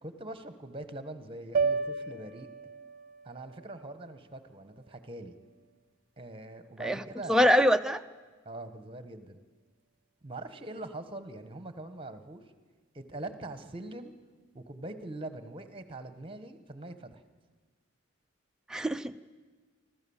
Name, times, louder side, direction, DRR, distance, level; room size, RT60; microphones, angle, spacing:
voice 1, 0.0-2.5 3.2-5.3 6.2-7.5 8.4-9.4 10.2-12.4 12.9-14.1 14.5-17.2, right 2 dB, 25° right, 10 dB, 1.2 m, -43 dB
sound 1, 1.5-5.8, right 5 dB, 40° right, 0.7 m, -35 dB
voice 2, 7.3-8.0 18.7-19.2, equal, 5° right, 7 dB, 0.5 m, -24 dB
25.5 x 14.5 x 7.2 m, 1.4 s
head